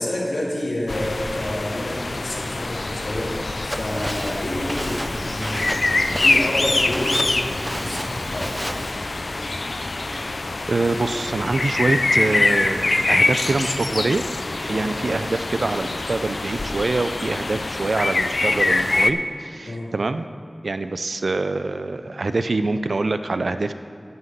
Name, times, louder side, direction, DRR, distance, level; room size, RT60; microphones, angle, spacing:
voice 1, 0.0-8.5 14.7-14.9 19.7-19.9, left 1 dB, 85° left, -3 dB, 2.1 m, -29 dB
sound 1, 0.9-19.1, left 2 dB, 70° left, 0.4 m, -24 dB
Walk footsteps, 3.7-8.9, right 1 dB, 15° right, 0.5 m, -32 dB
voice 2, 10.7-14.2 14.6-20.3 20.6-23.7, right 3 dB, 85° right, 10 dB, 0.4 m, -25 dB
11.0 x 5.8 x 7.8 m, 2.4 s
wide cardioid pair, 40°, 0 cm